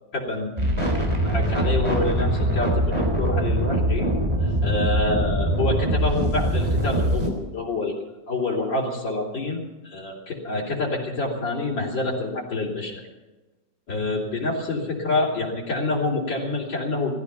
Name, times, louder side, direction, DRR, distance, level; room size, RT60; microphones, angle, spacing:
voice 1, 0.1-0.8 1.2-4.1 4.4-7.9 8.3-13.0 13.9-17.1, left 2 dB, 85° left, -5 dB, 4.2 m, -27 dB
sound 1, 0.6-7.3, right 1 dB, 15° right, 3.5 m, -23 dB
17.5 x 14.5 x 5.7 m, 1.1 s
omnidirectional pair, 1.9 m